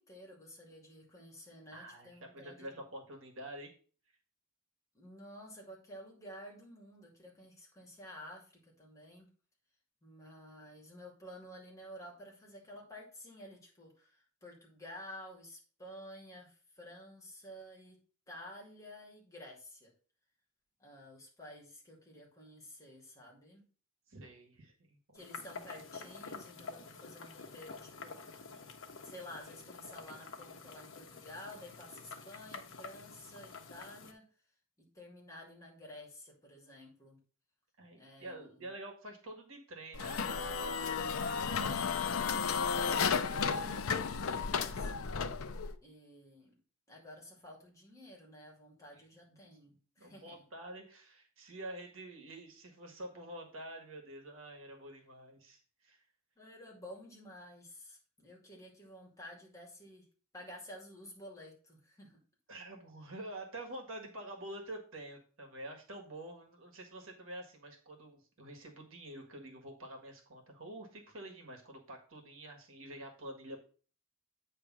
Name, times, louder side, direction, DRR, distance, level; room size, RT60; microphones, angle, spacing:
voice 1, 0.0-2.8 4.9-9.3 10.0-18.0 18.3-19.9 20.8-23.6 25.1-28.2 28.5-28.6 29.0-34.2 34.8-37.2 38.0-38.7 42.8-45.2 45.8-46.5 46.9-50.4 56.4-60.1 60.3-62.2, left 1 dB, 15° left, -1 dB, 2.4 m, -52 dB
voice 2, 1.7-3.7 24.1-25.2 37.8-41.0 41.2-42.4 48.9-49.0 49.7-56.0 62.5-73.6, right 1 dB, 65° right, 2 dB, 1.7 m, -48 dB
sound 1, 25.1-34.1, left 4 dB, 65° left, 1.0 m, -49 dB
sound 2, 39.9-45.7, left 6 dB, 80° left, 0.6 m, -33 dB
8.6 x 3.3 x 6.0 m, 0.41 s
head